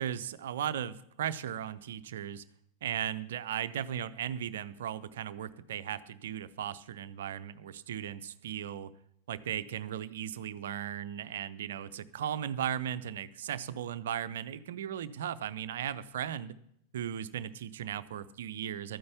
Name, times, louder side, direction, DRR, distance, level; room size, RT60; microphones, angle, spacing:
voice 1, 0.0-2.4 2.8-8.9 9.3-16.5 16.9-19.0, right 10 dB, 60° right, 13 dB, 0.6 m, -37 dB
12.5 x 9.5 x 7.0 m, 0.73 s
figure-of-eight pair, 90°, 0 cm